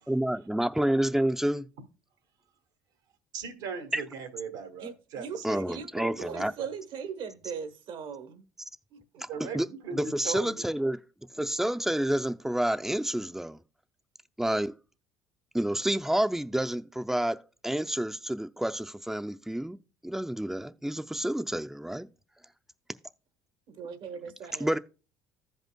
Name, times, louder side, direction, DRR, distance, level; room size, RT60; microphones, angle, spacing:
voice 1, 0.1-1.7 3.9-4.0 5.4-6.5 9.2-11.0 11.3-13.6 14.4-14.8 15.5-22.1 24.6-24.8, right 1 dB, 5° right, 0.5 m, -29 dB
voice 2, 3.3-5.6 5.9-6.7 9.3-10.6, right 6 dB, 85° right, 1.5 m, -39 dB
voice 3, 4.8-5.9 6.2-8.4 8.9-9.2 23.7-24.8, right 6 dB, 60° right, 1.0 m, -40 dB
15.0 x 5.4 x 2.2 m
hypercardioid pair, 70°, 10 cm